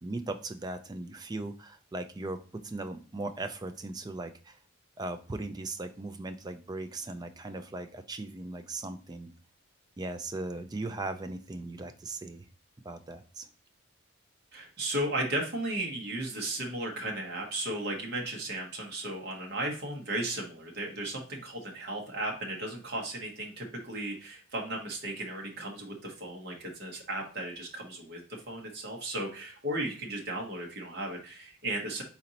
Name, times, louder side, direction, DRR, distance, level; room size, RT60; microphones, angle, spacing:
voice 1, 0.0-4.6 5.0-9.3 10.0-12.5 12.8-13.5, right 2 dB, 20° right, 8 dB, 0.3 m, -38 dB
voice 2, 14.5-32.0, right 1 dB, 45° right, 0 dB, 1.0 m, -35 dB
4.2 x 3.9 x 2.8 m, 0.37 s
head